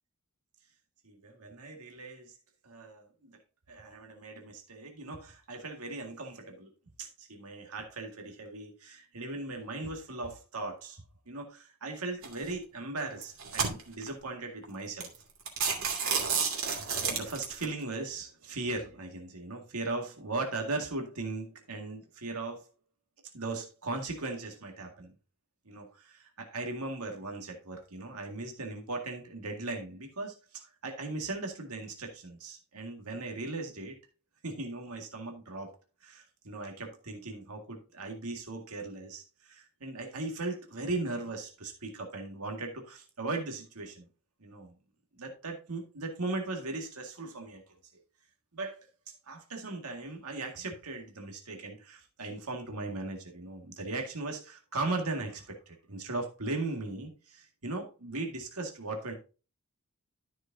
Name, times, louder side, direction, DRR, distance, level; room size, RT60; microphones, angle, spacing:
voice 1, 1.0-2.4 2.6-3.4 3.7-6.7 7.0-15.1 17.1-22.6 23.3-25.1 25.7-34.0 34.4-35.7 36.0-44.1 44.4-44.7 45.2-47.6 48.5-48.8 49.1-59.1, right 2 dB, 85° right, 3 dB, 2.0 m, -38 dB
sound 1, 12.2-12.5 13.1-14.1 14.6-14.7 15.0-15.2 15.5-17.6, right 5 dB, 65° right, 2.6 m, -30 dB
13.0 x 6.4 x 2.7 m, 0.33 s
head